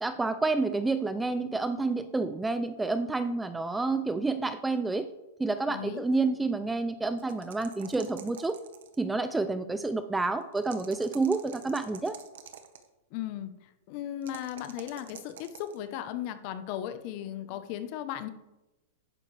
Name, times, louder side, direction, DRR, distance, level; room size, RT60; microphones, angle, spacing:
voice 1, 0.0-5.1 5.4-8.6 9.0-12.2, right 3 dB, 5° right, 11 dB, 0.4 m, -29 dB
voice 2, 5.7-6.1 13.1-13.5 13.9-18.3, left 11 dB, 40° left, 10 dB, 0.9 m, -36 dB
sound 1, 7.2-9.1 10.5-12.9 14.2-15.8, right 8 dB, 80° right, 1.2 m, -47 dB
11.5 x 9.8 x 3.3 m, 1.0 s
supercardioid pair, 160°, 0 cm